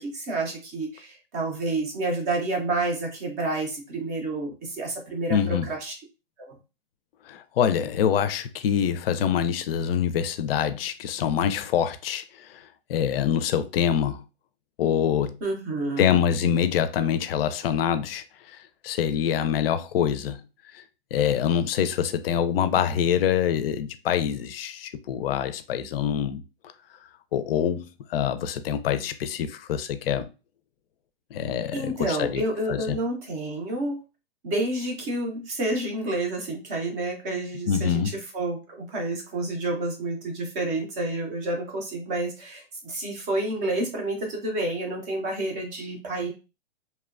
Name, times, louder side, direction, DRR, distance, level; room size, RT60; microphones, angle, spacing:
voice 1, 0.0-5.9 6.4-6.5 15.4-16.2 31.7-34.0 34.4-46.3, right 2 dB, 20° right, 0.4 m, -29 dB
voice 2, 5.3-5.7 7.3-14.2 14.8-15.4 16.0-20.4 20.7-20.8 21.1-26.4 27.3-30.3 31.3-32.4 32.7-33.0 37.7-38.2, left 9 dB, 70° left, 0.5 m, -25 dB
2.9 x 2.2 x 2.3 m
hypercardioid pair, 155°, 31 cm